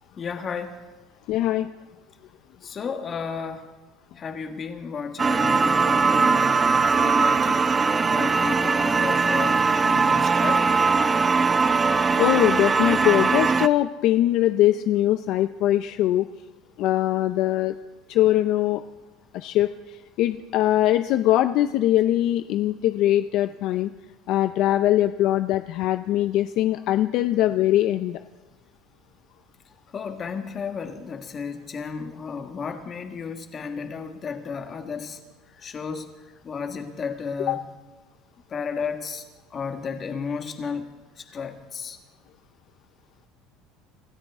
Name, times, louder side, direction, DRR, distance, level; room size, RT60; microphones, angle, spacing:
voice 1, 0.2-0.8 2.6-3.6 4.2-7.7 8.0-10.6 29.9-35.2 35.6-36.1 36.4-37.7 38.5-39.2 39.5-40.9 41.3-42.0, left 5 dB, 30° left, 6 dB, 1.6 m, -33 dB
voice 2, 1.3-1.7 12.2-16.3 16.8-17.7 18.1-18.8 19.3-19.7 20.2-23.9 24.3-28.2 37.5-37.6, left 13 dB, 60° left, 10 dB, 0.5 m, -21 dB
sound 1, 5.2-13.7, right 4 dB, 20° right, 0.5 m, -20 dB
26.5 x 13.0 x 3.6 m, 1.2 s
cardioid pair, 130°, 0 cm